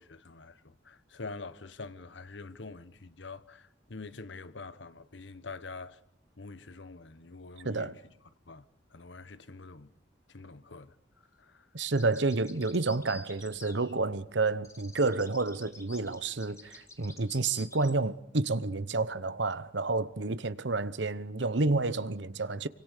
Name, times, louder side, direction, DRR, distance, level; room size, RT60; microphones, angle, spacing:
voice 1, 0.0-6.0 6.4-8.0 8.5-8.7 8.9-9.9 10.3-10.9 11.4-11.7, left 3 dB, 70° left, 1.1 m, -45 dB
voice 2, 7.6-7.9 11.7-22.7, right 3 dB, 65° right, 1.0 m, -30 dB
sound 1, 11.8-14.3 14.6-17.9, left 3 dB, 15° left, 2.0 m, -50 dB
28.5 x 25.0 x 6.7 m
head